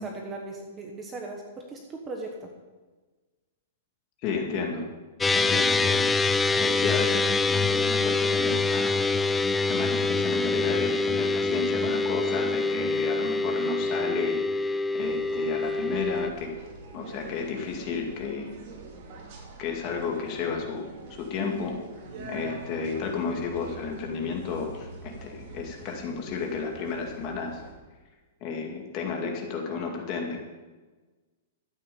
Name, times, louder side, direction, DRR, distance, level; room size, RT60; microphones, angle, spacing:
voice 1, 0.0-2.5, right 2 dB, 15° right, 2 dB, 1.2 m, -38 dB
voice 2, 4.2-4.8 5.3-6.1 6.5-9.0 9.6-14.4 14.9-16.5 16.9-18.5 19.6-21.7 22.3-27.6 28.4-30.4, left 5 dB, 30° left, 1 dB, 2.3 m, -32 dB
sound 1, 5.2-16.3, left 3 dB, 5° left, 0.3 m, -25 dB
sound 2, 15.0-27.7, right 3 dB, 40° right, 2.6 m, -45 dB
13.0 x 9.1 x 7.0 m, 1.3 s
supercardioid pair, 175°, 0 cm